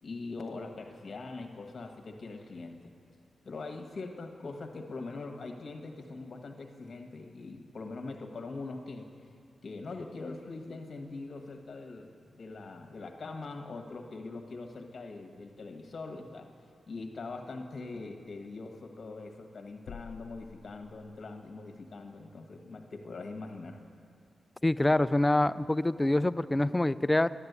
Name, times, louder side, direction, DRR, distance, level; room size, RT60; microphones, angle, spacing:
voice 1, 0.0-2.9 3.4-9.1 9.6-16.5 16.9-23.8, left 3 dB, 55° left, 4 dB, 1.5 m, -42 dB
sound 1, 19.9-21.5, left 7 dB, 90° left, 0.4 m, -49 dB
voice 2, 24.6-27.3, left 1 dB, 15° left, 15 dB, 0.3 m, -25 dB
11.5 x 11.0 x 8.2 m, 2.5 s
cardioid pair, 75°, 0 cm